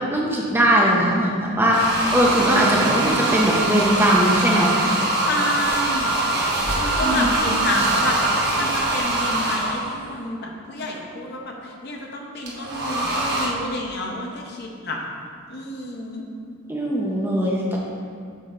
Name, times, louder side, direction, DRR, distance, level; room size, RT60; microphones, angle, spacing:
voice 1, 0.1-4.8 7.0-7.6 16.7-17.8, equal, 10° right, -3 dB, 0.6 m, -20 dB
sound 1, 1.7-10.0 12.5-13.5, right 2 dB, 50° right, 1.0 m, -23 dB
voice 2, 5.2-15.0 15.5-16.2, left 1 dB, 50° left, 0 dB, 0.7 m, -30 dB
6.5 x 4.5 x 3.8 m, 2.3 s
head